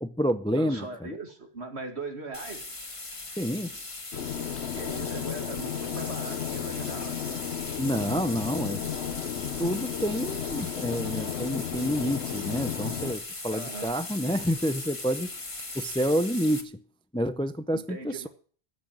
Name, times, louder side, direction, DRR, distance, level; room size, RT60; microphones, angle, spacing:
voice 1, 0.0-1.1 3.4-3.7 7.8-8.9 9.6-15.3 15.7-16.8 17.1-18.3, equal, 10° left, 0.3 m, -28 dB
voice 2, 0.5-2.7 4.7-7.2 13.5-14.0 17.7-18.3, right 3 dB, 85° right, 2.5 m, -39 dB
sound 1, 2.3-16.6, left 2 dB, 30° left, 1.4 m, -39 dB
sound 2, 4.1-13.1, left 9 dB, 80° left, 1.1 m, -34 dB
14.5 x 6.2 x 8.6 m
omnidirectional pair, 1.1 m